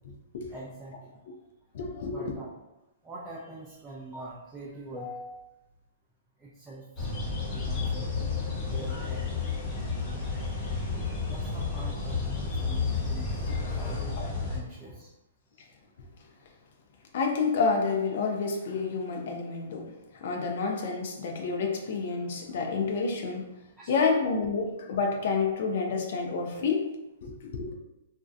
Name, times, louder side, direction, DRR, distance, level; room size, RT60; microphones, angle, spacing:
voice 1, 0.5-0.9 2.1-2.5 3.0-5.4 6.4-6.8 7.5-8.4 8.7-9.8 11.3-13.3 13.8-14.2 14.5-15.1 23.8-24.0, right 1 dB, 10° right, -6 dB, 0.4 m, -44 dB
voice 2, 1.7-2.3 13.5-14.3 17.1-23.5 23.9-26.9 27.2-27.7, left 4 dB, 60° left, 2 dB, 0.4 m, -29 dB
sound 1, 7.0-14.6, left 4 dB, 25° left, 0.9 m, -31 dB
2.6 x 2.1 x 2.4 m, 0.94 s
hypercardioid pair, 135°, 0 cm